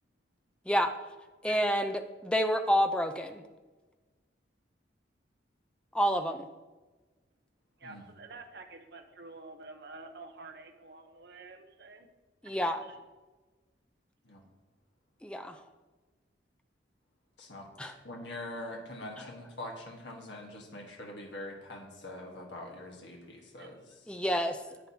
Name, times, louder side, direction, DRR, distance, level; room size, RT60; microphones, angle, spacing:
voice 1, 1.4-3.4 5.9-6.5 12.4-12.8 15.2-15.6 17.8-17.9 19.2-19.3 24.1-24.6, equal, 5° left, 6 dB, 0.6 m, -29 dB
voice 2, 7.8-12.1 12.8-13.0 23.6-24.0 24.4-24.5, right 3 dB, 60° right, 5 dB, 0.9 m, -49 dB
voice 3, 17.4-24.0, left 1 dB, 75° left, 1 dB, 1.4 m, -44 dB
10.5 x 8.9 x 2.8 m, 1.2 s
head